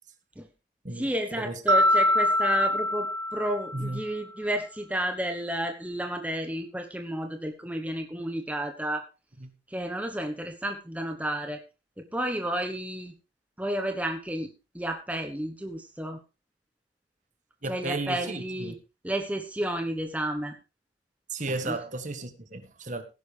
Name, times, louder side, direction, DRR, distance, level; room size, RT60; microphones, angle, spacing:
voice 1, 0.9-3.1 3.3-9.0 9.7-11.6 12.1-13.1 13.6-14.5 14.7-16.2 17.7-18.7 19.0-20.6 21.6-21.7, right 1 dB, 10° right, 1.2 m, -31 dB
Mallet percussion, 1.7-4.1, left 1 dB, 75° right, 1.0 m, -24 dB
voice 2, 17.6-18.8 21.3-23.0, right 2 dB, 40° right, 1.6 m, -34 dB
16.5 x 10.5 x 3.4 m
head